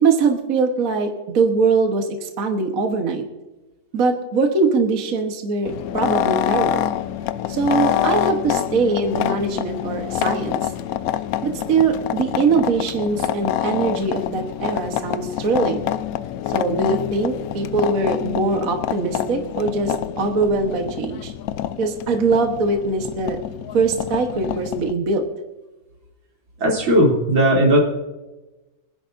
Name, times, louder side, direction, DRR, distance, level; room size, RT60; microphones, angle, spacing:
voice 1, 0.0-3.2 3.9-6.9 7.5-10.7 11.4-15.9 16.5-21.3 21.8-23.4 23.7-25.3, right 4 dB, 50° right, 3 dB, 1.6 m, -22 dB
sound 1, 5.6-24.9, left 11 dB, 80° left, 0.8 m, -26 dB
voice 2, 26.6-27.8, right 1 dB, 85° right, -2 dB, 4.1 m, -16 dB
24.5 x 11.0 x 2.7 m, 1.1 s
omnidirectional pair, 2.1 m